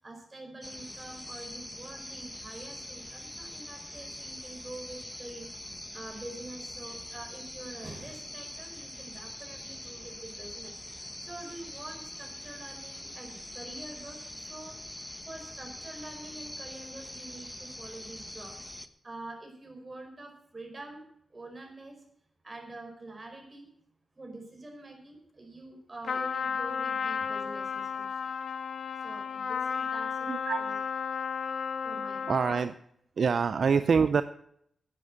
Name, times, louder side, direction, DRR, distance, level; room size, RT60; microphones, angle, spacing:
voice 1, 0.0-5.5 5.9-14.8 15.2-18.6 19.0-21.0 21.3-22.0 22.4-23.7 24.1-28.3 29.0-30.8 31.8-32.4, right 2 dB, 35° right, 3 dB, 4.9 m, -46 dB
sound 1, 0.6-18.9, left 1 dB, 10° left, 1.1 m, -43 dB
Trumpet, 26.0-32.7, left 6 dB, 75° left, 0.9 m, -33 dB
voice 2, 30.3-30.6 32.3-32.8 33.2-34.2, right 5 dB, 70° right, 12 dB, 0.5 m, -25 dB
11.0 x 9.4 x 7.5 m, 0.71 s
cardioid pair, 60°, 0 cm